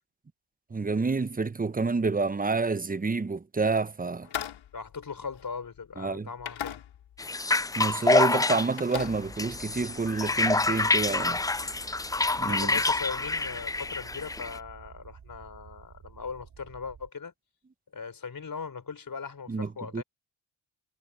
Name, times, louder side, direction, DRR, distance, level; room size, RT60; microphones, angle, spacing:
voice 1, 0.7-4.3 6.0-6.3 7.8-11.4 12.4-12.7 19.5-20.0, right 4 dB, 20° right, 0.9 m, -28 dB
sound 1, 4.2-5.9 6.4-7.3 7.6-8.0 8.3-9.9, left 10 dB, 75° left, 6.0 m, -39 dB
voice 2, 4.7-6.8 12.4-17.3 17.9-20.0, left 5 dB, 45° left, 4.3 m, -39 dB
sound 2, 7.2-14.6, left 3 dB, 10° left, 0.3 m, -27 dB
sound 3, 9.1-17.1, right 7 dB, 55° right, 3.1 m, -51 dB
supercardioid pair, 50°, 47 cm